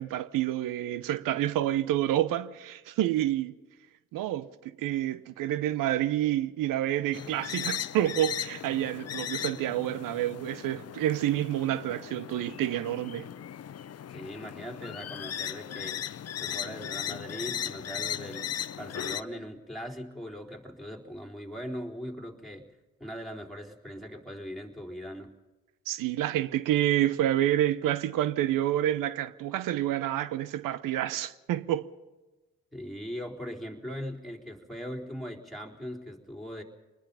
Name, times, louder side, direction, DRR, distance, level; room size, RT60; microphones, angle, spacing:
voice 1, 0.0-3.5 4.1-13.3 25.9-31.9, right 13 dB, 75° right, 0.8 m, -28 dB
sound 1, 7.1-19.2, left 10 dB, 50° left, 0.7 m, -37 dB
voice 2, 14.1-16.0 16.4-22.7 23.0-25.3 32.7-36.6, equal, ahead, 4.0 m, -40 dB
24.5 x 20.5 x 5.6 m
hypercardioid pair, 45°, 33 cm